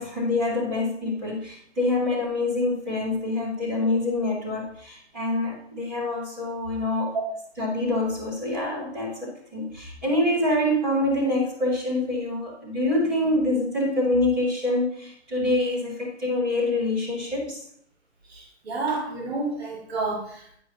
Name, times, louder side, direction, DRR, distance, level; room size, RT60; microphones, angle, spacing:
voice 1, 0.0-7.1 7.6-17.6, left 2 dB, ahead, -12 dB, 0.7 m, -26 dB
voice 2, 18.3-20.6, right 3 dB, 60° right, -1 dB, 1.8 m, -30 dB
9.1 x 5.4 x 2.8 m, 0.67 s
hypercardioid pair, 175°, 36 cm